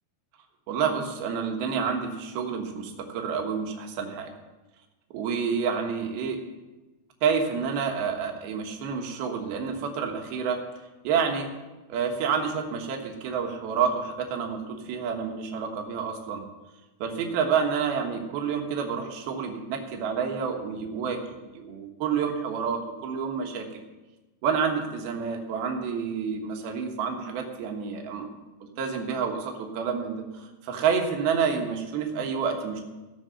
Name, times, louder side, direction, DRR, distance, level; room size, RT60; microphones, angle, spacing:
voice 1, 0.7-4.3 5.1-6.4 7.2-10.6 11.0-11.5 11.9-16.4 17.0-23.7 24.4-28.3 28.6-32.8, right 6 dB, 70° right, 3 dB, 3.1 m, -29 dB
16.5 x 6.4 x 7.8 m, 1.1 s
omnidirectional pair, 4.9 m